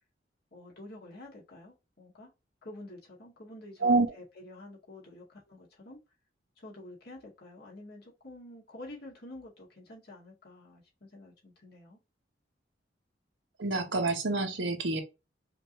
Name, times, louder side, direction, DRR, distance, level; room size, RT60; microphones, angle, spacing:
voice 1, 0.5-2.3 2.6-6.0 6.6-12.0, left 1 dB, 55° left, 2.1 m, -49 dB
voice 2, 13.6-15.0, right 3 dB, 75° right, 1.1 m, -27 dB
5.0 x 2.7 x 3.0 m
head